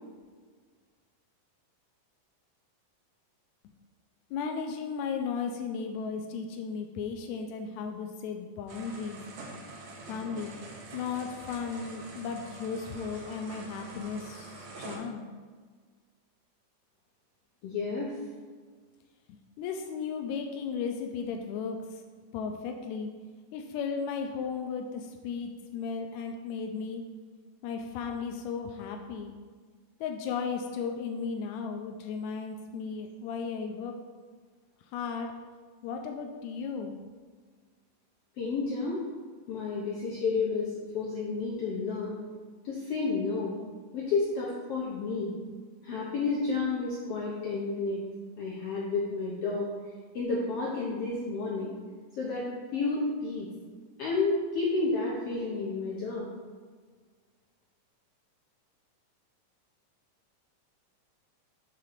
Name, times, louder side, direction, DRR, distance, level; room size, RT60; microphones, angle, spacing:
voice 1, 4.3-9.2 10.1-10.5 10.9-15.3 19.3-22.0 22.3-23.1 23.5-27.0 27.6-29.3 30.0-34.0 34.9-35.3 35.8-37.0, left 5 dB, 90° left, 4 dB, 1.6 m, -35 dB
sound 1, 8.7-15.0, right 3 dB, 65° right, 1.9 m, -45 dB
voice 2, 17.6-18.1 38.4-39.0 39.5-42.1 42.6-43.5 43.9-45.3 45.8-48.0 48.4-49.7 50.1-51.7 52.2-53.5 54.0-56.3, left 3 dB, 75° left, -5 dB, 1.4 m, -31 dB
6.4 x 3.7 x 5.9 m, 1.5 s
omnidirectional pair, 3.8 m